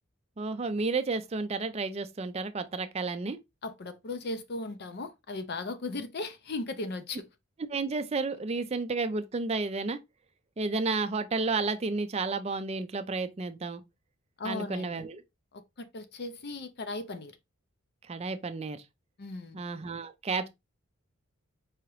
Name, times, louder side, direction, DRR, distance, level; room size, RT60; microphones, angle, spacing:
voice 1, 0.4-3.4 7.7-10.0 10.6-13.8 14.4-15.2 18.1-18.8 19.5-20.5, right 3 dB, 30° right, 0.4 m, -31 dB
voice 2, 3.6-7.2 14.4-15.0 15.5-17.3 19.2-19.6, left 2 dB, 50° left, 0.5 m, -37 dB
4.7 x 2.9 x 3.0 m
head